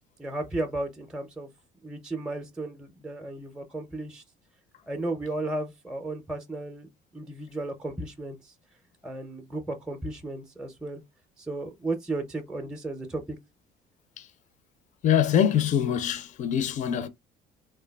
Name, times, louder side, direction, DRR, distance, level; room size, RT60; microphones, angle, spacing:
voice 1, 0.2-1.5 1.8-4.2 4.9-6.9 7.1-8.5 9.0-11.0 11.4-13.4, right 2 dB, 5° right, 0.5 m, -34 dB
voice 2, 15.0-17.1, left 9 dB, 45° left, 0.4 m, -24 dB
3.2 x 2.2 x 2.2 m
cardioid pair, 110°, 17 cm